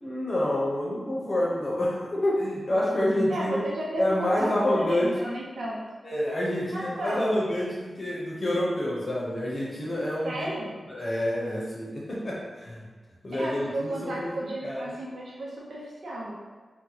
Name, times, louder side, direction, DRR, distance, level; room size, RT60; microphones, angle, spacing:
voice 1, 0.0-3.6 4.0-5.1 6.0-10.5 10.9-12.8 13.2-14.3 14.6-14.9, left 1 dB, 40° left, -5 dB, 0.7 m, -28 dB
voice 2, 3.3-5.8 6.7-7.4 10.2-10.7 13.4-16.3, right 1 dB, 75° right, -5 dB, 0.6 m, -33 dB
2.8 x 2.1 x 3.8 m, 1.4 s
wide cardioid pair, 85°, 0 cm